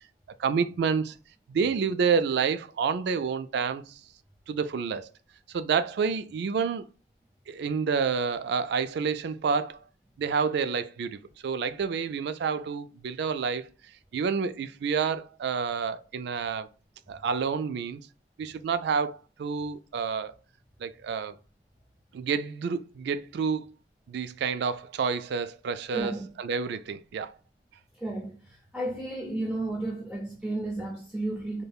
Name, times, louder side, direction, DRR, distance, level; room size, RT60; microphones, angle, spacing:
voice 1, 0.4-1.1 1.5-4.0 4.5-5.1 5.5-6.9 7.5-9.8 10.2-13.7 14.1-16.7 17.1-18.0 18.4-20.4 20.8-21.4 22.1-23.7 24.1-27.3, right 5 dB, 65° right, 0.3 m, -29 dB
voice 2, 25.9-26.3 28.0-31.6, right 2 dB, 5° right, 0.6 m, -33 dB
5.2 x 2.1 x 2.3 m
head